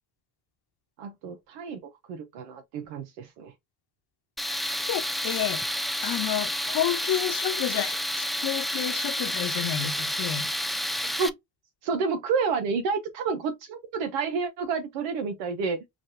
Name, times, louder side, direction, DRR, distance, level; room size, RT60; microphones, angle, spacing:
voice 1, 1.0-1.8 2.1-3.5 11.2-11.3 11.8-15.8, right 5 dB, 75° right, 0.9 m, -29 dB
Tools, 4.4-11.3, equal, ahead, 0.5 m, -30 dB
voice 2, 4.9-5.6 6.0-10.5, left 12 dB, 55° left, 0.9 m, -30 dB
5.9 x 2.5 x 2.6 m
hypercardioid pair, 50°, 47 cm